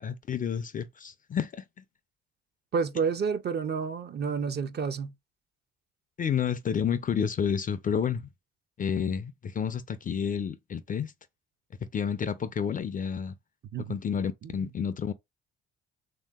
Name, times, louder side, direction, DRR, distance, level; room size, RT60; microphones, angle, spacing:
voice 1, 0.0-1.8 6.2-8.3 8.8-11.1 11.9-13.4 13.9-15.1, left 7 dB, 30° left, 0.4 m, -30 dB
voice 2, 2.7-5.1 13.7-14.0 14.4-14.6, right 5 dB, 35° right, 0.4 m, -30 dB
3.2 x 2.7 x 2.3 m
hypercardioid pair, 60°, 30 cm